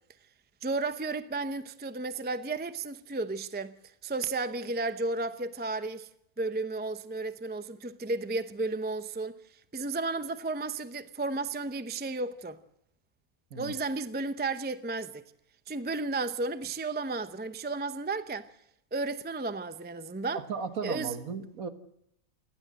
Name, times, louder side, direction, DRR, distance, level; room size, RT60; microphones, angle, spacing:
voice 1, 0.6-3.7 4.0-6.1 6.4-9.4 9.7-12.6 13.6-15.2 15.7-18.5 18.9-20.5 20.8-21.1, right 3 dB, 10° right, 0.5 m, -33 dB
voice 2, 20.5-21.7, right 5 dB, 65° right, 1.9 m, -35 dB
29.0 x 12.5 x 7.7 m
omnidirectional pair, 1.6 m